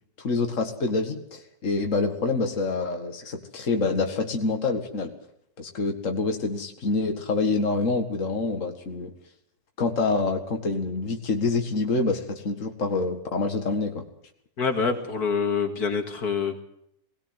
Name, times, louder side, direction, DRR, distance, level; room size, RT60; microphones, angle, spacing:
voice 1, 0.2-5.1 5.6-9.1 9.8-14.1, left 3 dB, 55° left, 4 dB, 2.2 m, -26 dB
voice 2, 14.6-16.6, left 5 dB, 85° left, 5 dB, 2.6 m, -26 dB
20.0 x 17.5 x 8.0 m, 0.72 s
omnidirectional pair, 1.6 m